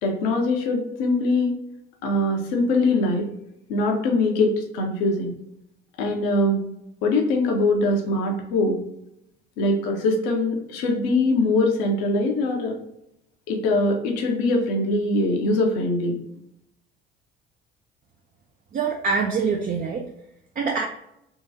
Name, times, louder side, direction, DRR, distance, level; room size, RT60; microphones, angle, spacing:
voice 1, 0.0-1.5 2.0-3.3 3.7-5.3 6.0-6.6 7.0-8.8 9.6-12.7 13.5-16.2, left 2 dB, 60° left, 2 dB, 0.8 m, -22 dB
voice 2, 18.7-20.0 20.6-20.9, right 5 dB, 30° right, 1 dB, 0.5 m, -24 dB
3.7 x 3.0 x 2.6 m, 0.81 s
figure-of-eight pair, 50°, 29 cm